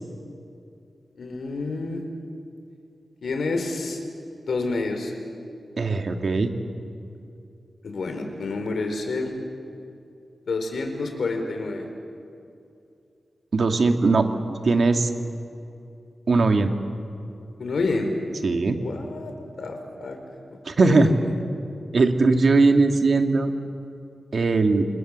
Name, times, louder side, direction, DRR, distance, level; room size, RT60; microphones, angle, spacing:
voice 1, 1.2-2.0 3.2-4.0 4.4-5.1 7.8-9.3 10.5-11.9 17.6-18.1 18.7-19.3 19.6-20.2 20.8-21.1, left 3 dB, 70° left, 5 dB, 4.2 m, -28 dB
voice 2, 5.8-6.5 13.5-14.3 14.6-15.1 16.3-16.7 18.4-18.8 20.7-21.1 21.9-23.5 24.3-24.9, right 3 dB, 50° right, 5 dB, 1.9 m, -19 dB
29.5 x 26.5 x 7.5 m, 2.6 s
wide cardioid pair, 145°, 0 cm